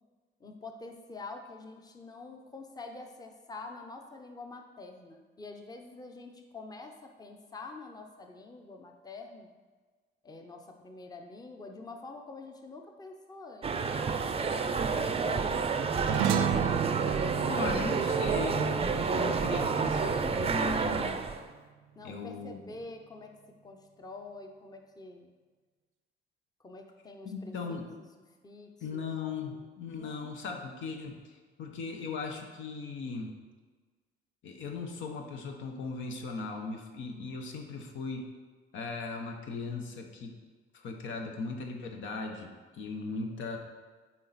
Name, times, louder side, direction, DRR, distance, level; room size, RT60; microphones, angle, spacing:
voice 1, 0.4-9.5 10.2-15.3 21.9-23.4 23.6-25.3 26.6-27.8 28.4-29.0 30.0-30.3, left 3 dB, 20° left, 4 dB, 0.7 m, -46 dB
sound 1, 13.6-21.5, right 5 dB, 30° right, 0.5 m, -29 dB
sound 2, 16.0-20.7, right 9 dB, 85° right, 0.5 m, -33 dB
voice 2, 17.4-21.1 22.0-22.6 27.2-27.9 28.8-31.2 31.6-33.3 34.4-38.3 38.7-40.3 40.7-43.6, left 4 dB, 75° left, 3 dB, 0.9 m, -38 dB
7.3 x 4.3 x 4.1 m, 1.4 s
cardioid pair, 90°, 20 cm